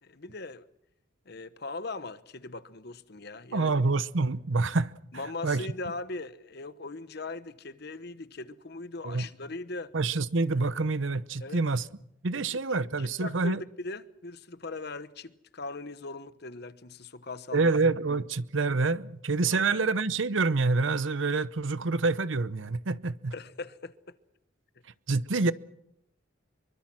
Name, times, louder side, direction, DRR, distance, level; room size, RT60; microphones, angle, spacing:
voice 1, 0.0-0.7 1.3-3.8 5.1-9.9 11.4-11.6 12.3-12.4 12.7-17.7 19.5-19.6 23.3-24.1, left 3 dB, 55° left, 1.1 m, -40 dB
voice 2, 3.5-4.9 5.4-5.6 9.0-9.3 9.9-11.9 12.2-13.6 17.5-23.3 25.1-25.5, right 3 dB, 75° right, 0.8 m, -27 dB
25.0 x 23.5 x 6.2 m
head